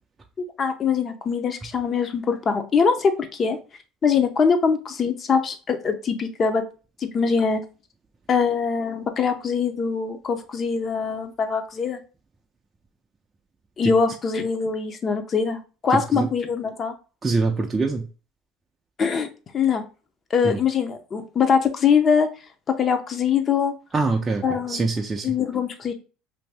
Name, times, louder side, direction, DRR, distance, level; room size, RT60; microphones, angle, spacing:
voice 1, 0.6-3.6 4.0-6.6 7.0-7.6 8.3-12.0 13.8-16.9 19.0-19.3 19.5-19.9 20.3-22.3 22.7-23.7 24.4-24.9 25.2-25.9, left 6 dB, 35° left, 8 dB, 0.5 m, -23 dB
voice 2, 17.2-18.0 20.4-20.6 23.9-25.3, right 3 dB, 20° right, 2 dB, 0.4 m, -24 dB
2.6 x 2.6 x 3.3 m, 0.35 s
supercardioid pair, 105°, 0 cm